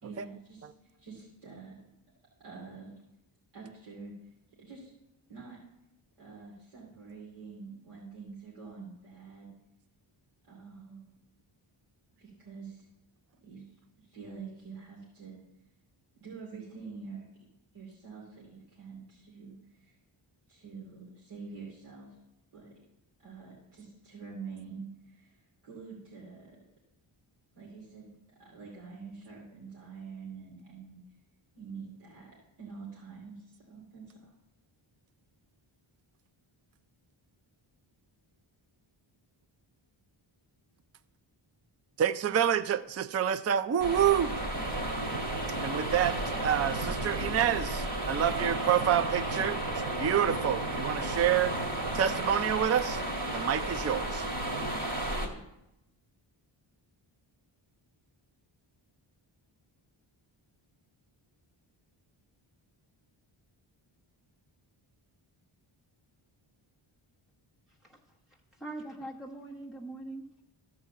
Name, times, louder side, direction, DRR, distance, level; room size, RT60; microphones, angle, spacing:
voice 1, 0.0-1.7 2.4-2.9 3.5-4.1 4.6-4.9 5.3-5.6 6.2-9.5 10.5-11.0 12.2-12.9 13.4-15.4 16.2-17.2 17.7-20.0 20.5-22.1 22.5-22.7 23.2-26.6 27.5-31.0 31.5-34.3, right 5 dB, 85° right, -5 dB, 2.9 m, -46 dB
voice 2, 42.0-44.4 45.6-49.6 50.0-51.5 51.9-53.0 53.3-54.2, right 9 dB, 35° right, 13 dB, 0.4 m, -28 dB
sound 1, 43.8-55.3, right 1 dB, 55° right, 2.7 m, -33 dB
voice 3, 67.7-68.0 68.5-70.4, right 2 dB, ahead, -1 dB, 0.9 m, -42 dB
13.0 x 4.8 x 7.3 m, 0.89 s
wide cardioid pair, 85°, 50 cm